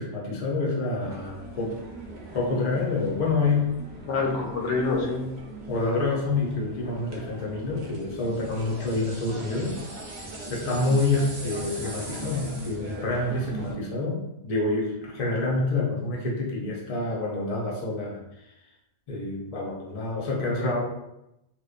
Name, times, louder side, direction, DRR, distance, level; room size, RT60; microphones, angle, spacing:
voice 1, 0.0-1.8 2.3-3.8 5.7-9.8 10.5-18.5 19.1-20.8, left 3 dB, 45° left, -3 dB, 0.5 m, -27 dB
sound 1, 1.0-13.7, right 3 dB, 65° right, 0.8 m, -41 dB
voice 2, 4.1-5.3 20.4-20.8, left 3 dB, 80° left, 0 dB, 0.9 m, -27 dB
sound 2, 8.2-13.0, right 1 dB, 40° right, 0.3 m, -43 dB
2.8 x 2.0 x 2.4 m, 0.88 s
omnidirectional pair, 1.2 m